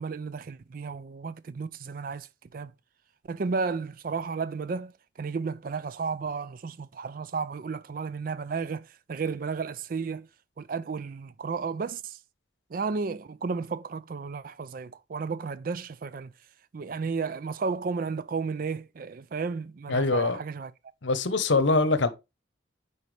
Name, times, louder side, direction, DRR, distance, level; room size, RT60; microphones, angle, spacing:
voice 1, 0.0-2.7 3.2-10.3 10.6-12.2 12.7-16.3 16.7-20.7, right 5 dB, 45° right, 0.4 m, -33 dB
voice 2, 19.9-20.4 21.0-22.1, left 3 dB, 70° left, 0.9 m, -23 dB
9.1 x 4.2 x 3.3 m
head